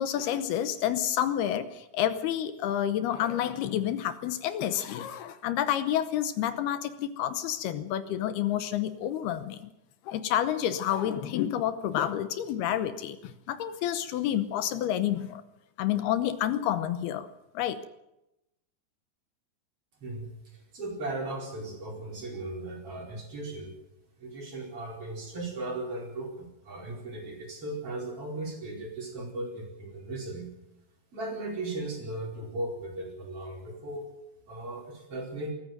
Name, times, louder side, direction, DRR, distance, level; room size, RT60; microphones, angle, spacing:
voice 1, 0.0-9.7 10.1-15.4 15.8-17.3 17.5-17.8, left 11 dB, 75° left, 11 dB, 2.7 m, -29 dB
voice 2, 20.0-23.7 24.2-30.5 31.1-34.1 34.5-35.5, right 2 dB, 35° right, 0 dB, 5.3 m, -37 dB
21.0 x 14.5 x 9.2 m, 0.90 s
omnidirectional pair, 5.0 m